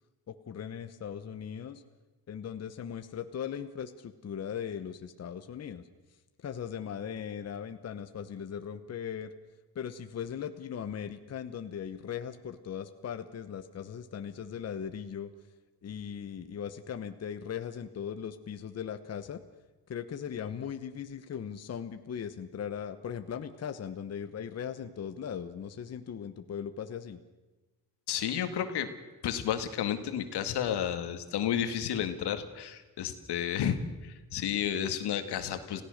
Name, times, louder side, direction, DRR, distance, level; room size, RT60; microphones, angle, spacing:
voice 1, 0.3-1.8 2.3-5.9 6.4-9.3 9.7-15.3 15.8-19.4 19.9-27.2, left 8 dB, 40° left, 9 dB, 1.0 m, -39 dB
voice 2, 28.1-28.9 29.2-35.8, left 9 dB, 85° left, 9 dB, 2.0 m, -32 dB
27.5 x 16.5 x 6.5 m, 1.2 s
cardioid pair, 155°, 39 cm